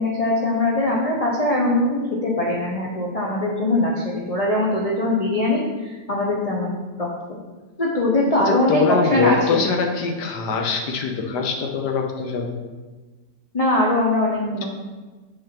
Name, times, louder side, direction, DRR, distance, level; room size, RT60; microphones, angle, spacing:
voice 1, 0.0-7.1 7.8-9.6 13.5-14.6, left 1 dB, 40° left, -3 dB, 0.5 m, -21 dB
voice 2, 8.5-12.6, left 5 dB, 70° left, 3 dB, 1.4 m, -23 dB
6.4 x 4.1 x 5.8 m, 1.3 s
omnidirectional pair, 1.9 m